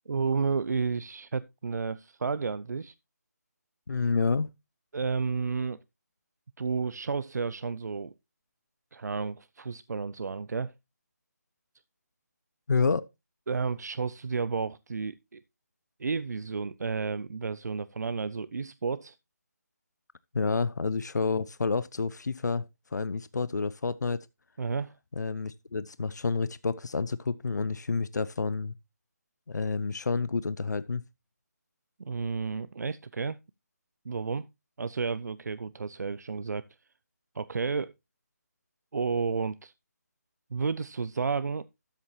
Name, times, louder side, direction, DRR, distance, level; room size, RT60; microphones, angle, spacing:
voice 1, 0.1-2.9 4.9-5.8 6.6-8.1 8.9-10.7 13.5-15.4 16.0-19.2 24.6-24.9 32.0-33.4 34.1-34.5 34.8-36.6 37.3-37.9 38.9-39.7 40.5-41.7, right 5 dB, 75° right, 0.5 m, -31 dB
voice 2, 3.9-4.5 12.7-13.1 20.3-22.7 22.9-24.3 25.2-28.7 29.5-31.0, left 4 dB, 90° left, 0.5 m, -29 dB
12.5 x 7.2 x 2.9 m
figure-of-eight pair, 160°, 9 cm